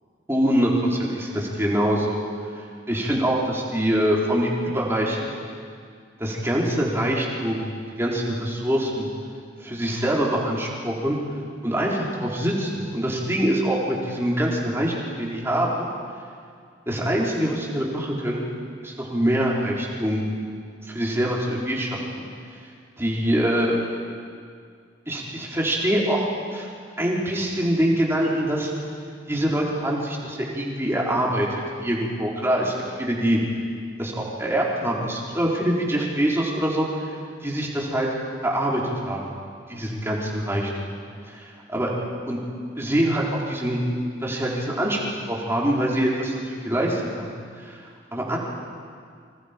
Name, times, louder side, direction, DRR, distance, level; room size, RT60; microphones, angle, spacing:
voice 1, 0.3-2.2 2.9-5.3 6.2-9.1 9.6-11.2 11.6-15.9 16.9-18.4 18.8-20.2 20.9-22.3 23.0-24.1 25.1-26.3 26.5-26.7 27.0-28.7 29.3-31.5 31.8-33.4 34.0-38.1 38.4-39.2 39.7-40.7 41.3-41.9 42.3-42.4 42.8-43.8 44.2-45.0 45.3-47.8 48.1-48.4, right 1 dB, 15° right, -4 dB, 4.2 m, -24 dB
29.5 x 26.0 x 5.3 m, 2.2 s
head